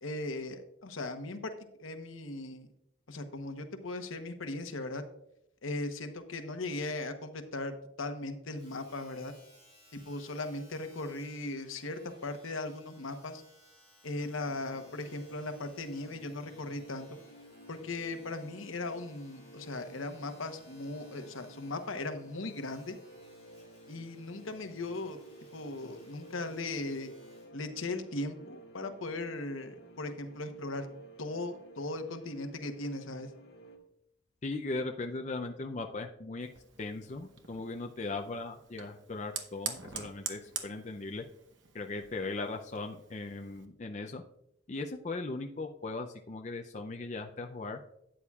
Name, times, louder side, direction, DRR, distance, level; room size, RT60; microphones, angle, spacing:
voice 1, 0.0-1.5 1.8-2.7 3.1-5.0 5.6-9.3 9.9-13.4 14.0-17.2 17.7-23.0 23.9-25.2 25.5-27.1 27.5-30.9 31.2-33.3, left 2 dB, 85° left, 8 dB, 1.0 m, -38 dB
Domestic sounds home sounds, 8.6-27.6 28.2-28.3, equal, 20° right, 3.7 m, -62 dB
sound 1, 14.1-33.8, right 1 dB, 55° left, 1.7 m, -53 dB
voice 2, 34.4-36.5 36.8-41.2 41.7-44.2 44.7-47.8, left 3 dB, 35° left, 4 dB, 0.5 m, -38 dB
Fire, 36.4-43.7, right 7 dB, 65° right, 0.9 m, -45 dB
12.5 x 8.7 x 2.4 m, 0.79 s
head